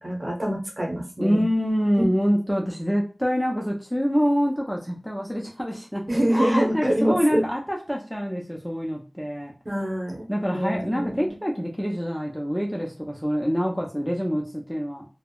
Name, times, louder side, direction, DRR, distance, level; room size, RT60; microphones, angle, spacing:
voice 1, 0.0-1.5 1.9-2.0 6.1-7.4 9.6-11.4, equal, 40° right, -2 dB, 1.1 m, -25 dB
voice 2, 1.2-6.0 6.3-9.5 10.3-15.1, equal, ahead, -1 dB, 0.5 m, -26 dB
3.3 x 2.0 x 2.3 m, 0.34 s
wide cardioid pair, 45°, 0 cm